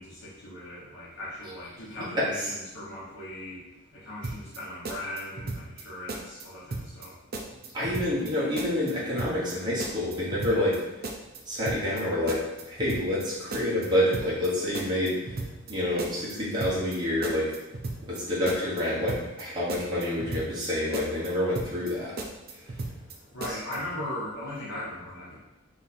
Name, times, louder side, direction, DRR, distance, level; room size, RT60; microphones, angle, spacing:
voice 1, 0.0-3.7 3.9-7.2 23.3-25.4, left 1 dB, 65° left, -8 dB, 1.2 m, -38 dB
sound 1, 4.2-4.6 4.8-5.8 6.1-6.4 6.7-7.1 7.3-8.3 8.6-8.9 9.2-9.5 9.8-10.8 11.0-11.4 11.7-12.0 12.3-13.2 13.5-13.9 14.1-14.5 14.7-15.7 16.0-16.3 16.6-17.0 17.2-18.2 18.5-18.8 19.1-19.4 19.7-20.7 20.9-21.3 21.6-21.9 22.2-23.1 23.4-23.8, right 2 dB, 45° right, 0.5 m, -35 dB
voice 2, 7.5-11.0 11.5-17.5 18.0-22.2 22.6-22.9 23.5-23.6, left 1 dB, 20° right, -8 dB, 1.3 m, -28 dB
3.5 x 3.1 x 4.2 m, 1.0 s
head